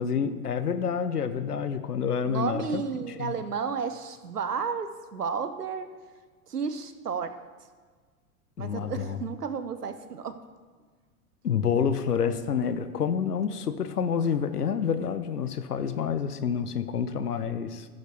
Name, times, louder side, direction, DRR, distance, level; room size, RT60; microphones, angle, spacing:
voice 1, 0.0-2.8 3.2-3.3 8.6-9.2 11.4-17.9, left 7 dB, 85° left, 10 dB, 0.8 m, -28 dB
voice 2, 2.3-5.9 6.5-7.4 8.6-10.4, right 6 dB, 90° right, 11 dB, 0.8 m, -32 dB
15.5 x 6.6 x 3.4 m, 1.5 s
figure-of-eight pair, 90°, 45 cm